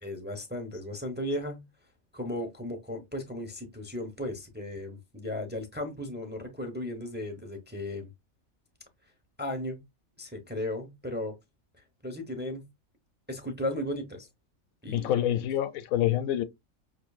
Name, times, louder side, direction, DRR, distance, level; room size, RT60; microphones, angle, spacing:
voice 1, 0.0-1.6 2.1-8.1 9.4-9.8 10.2-11.3 12.0-12.7 13.3-14.3 14.8-15.1, left 1 dB, 10° right, 0.6 m, -35 dB
voice 2, 14.9-16.4, left 12 dB, 90° left, 1.0 m, -27 dB
5.8 x 2.5 x 2.3 m
omnidirectional pair, 1.4 m